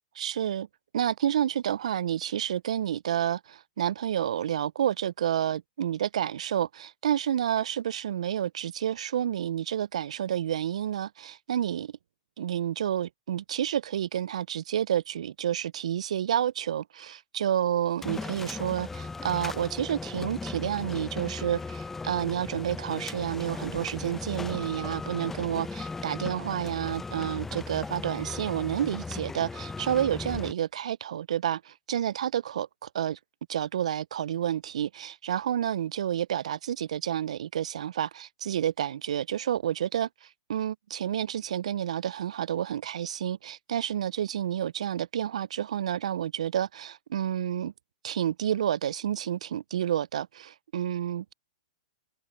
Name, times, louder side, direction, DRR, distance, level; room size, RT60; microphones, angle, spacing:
voice 1, 0.2-0.7 0.9-11.9 12.4-33.2 33.5-47.7 48.0-51.3, right 10 dB, 80° right, 0.3 m, -30 dB
sound 1, 18.0-30.5, left 3 dB, 10° left, 0.6 m, -37 dB
hypercardioid pair, 130°, 3 cm